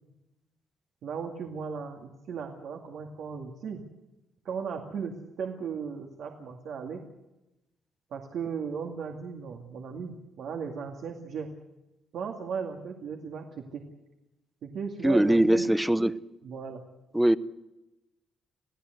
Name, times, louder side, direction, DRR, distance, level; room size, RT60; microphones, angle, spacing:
voice 1, 1.0-3.8 4.4-7.0 8.1-11.5 12.1-13.4 13.7-13.8 14.6-15.6 16.4-16.8, right 6 dB, 70° right, 2.3 m, -36 dB
voice 2, 15.0-16.2 17.1-17.4, right 1 dB, 5° right, 0.8 m, -22 dB
27.5 x 16.0 x 8.0 m
cardioid pair, 90°, 0 cm